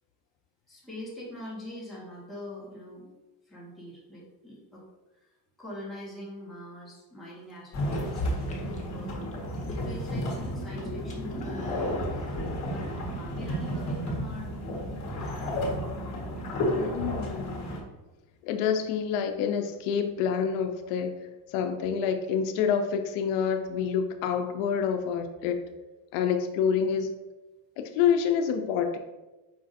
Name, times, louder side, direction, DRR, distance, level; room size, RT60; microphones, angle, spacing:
voice 1, 0.7-3.1 3.5-4.8 5.2-5.3 5.6-9.2 9.7-14.6 14.9-15.5, left 1 dB, ahead, -8 dB, 1.0 m, -43 dB
sound 1, 7.3-7.8 8.3-10.2 10.5-12.1, left 3 dB, 15° left, 0.3 m, -48 dB
sound 2, 7.7-17.8, equal, 35° left, 1.1 m, -32 dB
voice 2, 16.8-17.7 18.4-21.1 21.5-25.6 26.1-27.1 27.8-29.0, left 7 dB, 85° left, 6 dB, 0.6 m, -27 dB
5.0 x 2.5 x 4.0 m, 1.1 s
cardioid pair, 170°, 48 cm